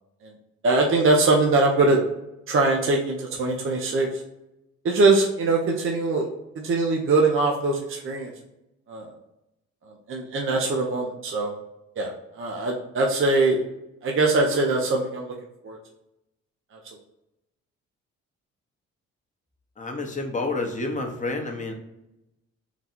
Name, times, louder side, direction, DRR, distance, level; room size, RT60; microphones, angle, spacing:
voice 1, 0.6-2.0 2.5-4.2 4.8-6.3 6.5-8.3 8.9-9.1 10.1-11.5 12.0-13.6 14.0-15.3 15.6-15.8 16.7-16.8, right 3 dB, 45° right, 0 dB, 0.7 m, -22 dB
voice 2, 19.8-21.7, left 2 dB, 25° left, 2 dB, 0.9 m, -29 dB
4.0 x 2.2 x 4.4 m, 0.91 s
cardioid pair, 90°, 30 cm